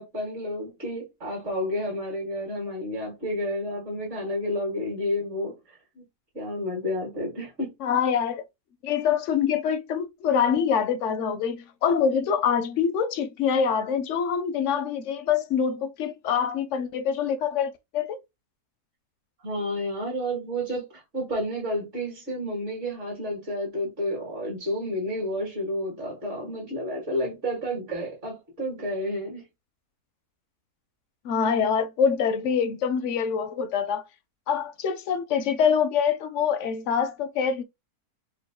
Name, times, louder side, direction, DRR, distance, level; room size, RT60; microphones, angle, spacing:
voice 1, 0.0-6.0 6.3-7.7 19.4-29.4, equal, 50° right, 2.0 m, -30 dB
voice 2, 7.8-8.4 8.8-18.2 31.2-34.0 34.5-37.6, left 7 dB, 65° left, 0.7 m, -25 dB
4.6 x 2.4 x 3.6 m
omnidirectional pair, 1.6 m